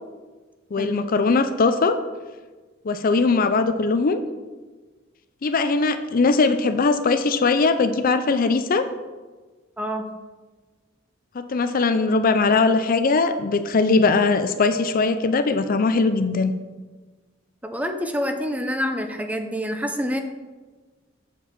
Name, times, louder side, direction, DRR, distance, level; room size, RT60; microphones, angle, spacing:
voice 1, 0.7-2.0 2.8-4.2 5.4-8.9 11.3-16.5, left 4 dB, 45° left, 10 dB, 0.5 m, -20 dB
voice 2, 17.6-20.2, equal, 10° right, 6 dB, 0.7 m, -27 dB
8.3 x 4.5 x 6.9 m, 1.3 s
head